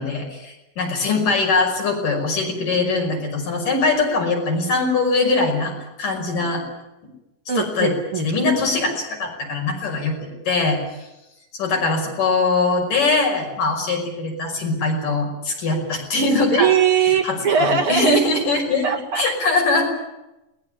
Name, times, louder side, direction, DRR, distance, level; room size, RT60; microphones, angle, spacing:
voice 1, 0.0-5.7 6.0-6.6 7.6-10.8 11.6-16.7 17.2-19.9, left 3 dB, 75° left, 1 dB, 7.2 m, -22 dB
voice 2, 7.5-8.3 16.5-18.2 18.8-19.2, right 6 dB, 45° right, 4 dB, 2.6 m, -20 dB
21.0 x 20.0 x 10.0 m, 0.95 s
omnidirectional pair, 3.8 m